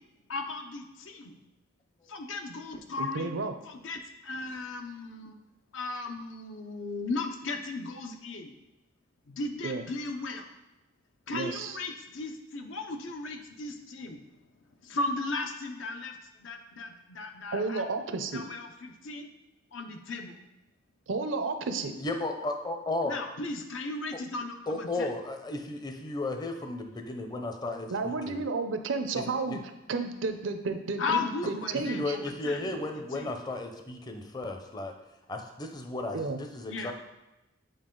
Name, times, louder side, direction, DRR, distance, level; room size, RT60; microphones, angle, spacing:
voice 1, 0.3-1.3 2.1-3.3 3.7-5.4 5.7-8.6 9.3-10.5 11.3-14.2 14.8-17.9 18.3-19.3 19.7-20.4 23.1-25.1 31.0-32.7 33.1-33.3 36.7-36.9, left 3 dB, 75° left, 4 dB, 0.7 m, -36 dB
voice 2, 3.0-3.5 9.6-9.8 11.3-11.8 17.5-18.4 21.1-21.9 27.9-29.6 29.9-32.2 36.1-36.4, right 3 dB, 75° right, 8 dB, 0.6 m, -32 dB
voice 3, 22.0-23.2 24.7-28.4 29.5-29.6 31.7-34.9 35.3-36.9, left 2 dB, 20° left, 5 dB, 0.6 m, -34 dB
7.9 x 4.4 x 3.8 m, 0.97 s
head